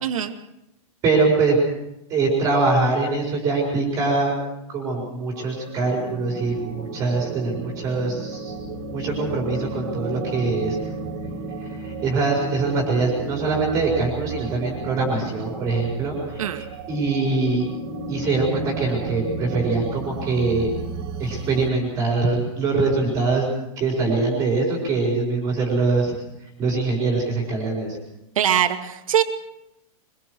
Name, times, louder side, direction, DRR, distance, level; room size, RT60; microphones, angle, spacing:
voice 1, 0.0-0.3 16.4-16.7 28.4-29.2, right 10 dB, 65° right, 6 dB, 2.4 m, -22 dB
voice 2, 1.0-1.6 2.1-4.3 4.7-8.5 8.9-10.8 11.6-17.6 18.1-20.7 21.2-23.5 23.8-26.2 26.6-28.0, right 3 dB, 15° right, -2 dB, 4.6 m, -23 dB
sound 1, 5.2-21.7, right 4 dB, 45° right, 3.9 m, -33 dB
25.5 x 23.5 x 4.8 m, 0.86 s
supercardioid pair, 180°, 18 cm